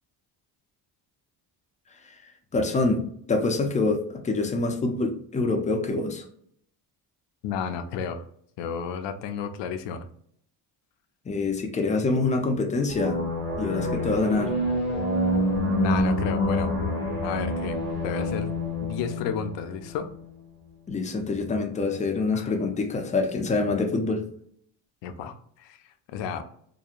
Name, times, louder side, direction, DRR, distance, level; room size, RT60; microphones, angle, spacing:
voice 1, 2.5-6.2 11.3-13.2 13.6-14.5 20.9-24.2, left 3 dB, 20° left, 4 dB, 0.3 m, -25 dB
voice 2, 7.4-8.2 8.6-10.1 15.8-16.7 17.2-18.5 18.8-20.1 22.3-22.5 25.0-26.4, left 6 dB, 75° left, 9 dB, 0.5 m, -32 dB
sound 1, 12.9-20.3, left 1 dB, 25° right, 1.1 m, -27 dB
2.8 x 2.1 x 2.3 m, 0.65 s
cardioid pair, 115°, 44 cm